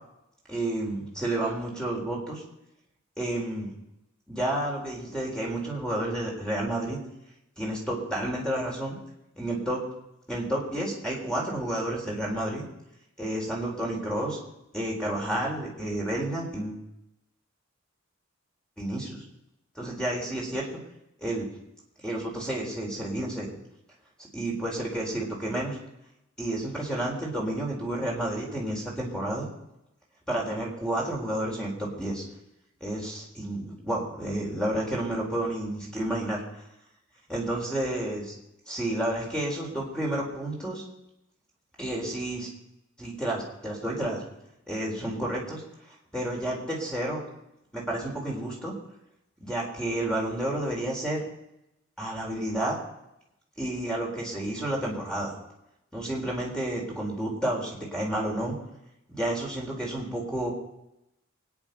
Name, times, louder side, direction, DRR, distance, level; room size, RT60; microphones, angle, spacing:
voice 1, 0.5-2.4 3.2-3.7 4.3-7.0 7.6-9.0 9.3-9.8 10.3-12.6 13.2-14.4 14.7-16.8 18.8-19.2 19.8-20.7 21.2-21.5 22.0-23.5 24.3-25.8 26.4-29.5 30.3-32.2 32.8-36.4 37.3-38.4 38.7-40.8 41.8-42.5 43.0-44.2 44.7-45.6 46.1-47.2 47.7-48.7 49.4-51.2 52.0-52.8 53.6-55.4 55.9-58.5 59.1-60.5, right 1 dB, 5° left, -2 dB, 4.2 m, -30 dB
24.5 x 9.9 x 5.5 m, 0.87 s
head